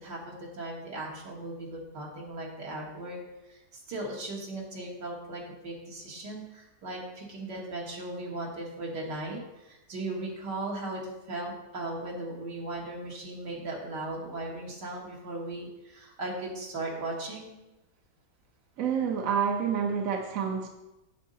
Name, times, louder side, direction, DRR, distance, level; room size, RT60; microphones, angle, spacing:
voice 1, 0.0-3.2 3.5-3.6 3.9-11.0 11.3-17.5, right 2 dB, 75° right, -2 dB, 2.4 m, -37 dB
voice 2, 18.8-20.7, right 7 dB, 60° right, 2 dB, 1.1 m, -28 dB
8.3 x 7.6 x 4.0 m, 0.97 s
omnidirectional pair, 1.9 m